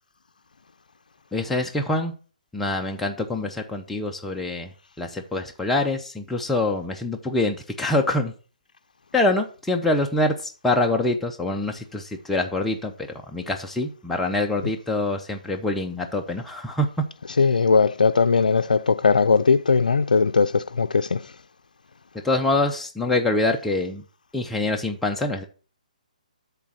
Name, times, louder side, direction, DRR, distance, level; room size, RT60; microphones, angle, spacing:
voice 1, 1.3-2.1 2.5-4.7 5.0-8.3 9.1-16.9 22.2-24.0 24.3-25.4, left 2 dB, 5° left, 0.5 m, -25 dB
voice 2, 17.4-21.2, left 5 dB, 85° left, 0.4 m, -19 dB
8.4 x 3.4 x 6.3 m
hypercardioid pair, 150°, 4 cm